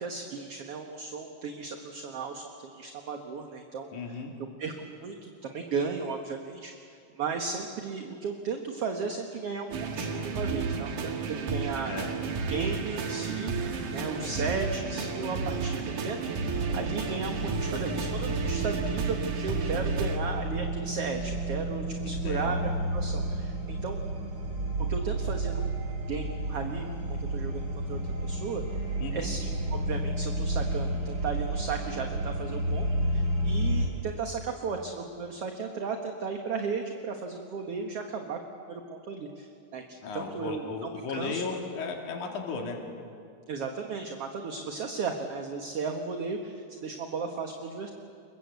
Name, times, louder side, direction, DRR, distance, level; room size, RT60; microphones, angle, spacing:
voice 1, 0.0-6.7 7.2-12.0 12.3-24.0 24.9-25.7 26.1-28.6 29.1-32.9 33.1-38.4 38.7-41.4 43.5-47.9, right 5 dB, 55° right, 4 dB, 2.2 m, -35 dB
voice 2, 3.9-4.3 11.9-12.1 22.0-22.6 29.0-29.3 40.0-42.8, left 4 dB, 75° left, 1 dB, 3.9 m, -35 dB
sound 1, 9.7-20.2, right 4 dB, 80° right, 3.5 m, -32 dB
sound 2, 16.4-33.9, right 1 dB, 40° right, 4.0 m, -31 dB
28.0 x 22.5 x 8.2 m, 2.4 s
omnidirectional pair, 3.6 m